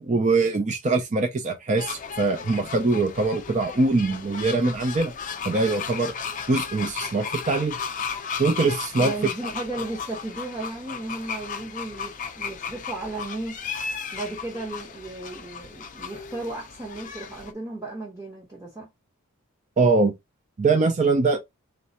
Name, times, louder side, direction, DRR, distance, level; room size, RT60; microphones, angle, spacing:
voice 1, 0.0-5.1 5.4-6.1 6.5-7.7 8.4-9.1 19.8-20.2 20.6-21.4, right 3 dB, 35° right, 0.5 m, -22 dB
sound 1, 1.8-17.5, left 6 dB, 35° left, 0.6 m, -35 dB
voice 2, 9.0-13.6 14.1-18.9, right 2 dB, 15° right, 1.0 m, -35 dB
3.9 x 3.1 x 2.9 m
head